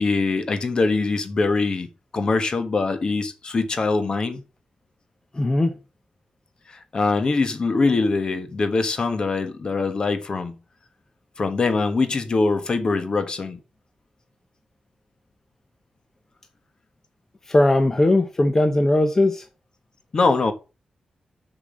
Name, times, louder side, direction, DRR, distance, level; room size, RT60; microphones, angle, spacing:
voice 1, 0.0-4.4 6.7-10.6 11.4-13.6 20.1-20.5, left 3 dB, 40° left, 1.2 m, -23 dB
voice 2, 5.3-5.8 17.5-19.5, left 1 dB, 20° left, 0.8 m, -19 dB
6.9 x 6.0 x 6.2 m
wide cardioid pair, 150°, 2 cm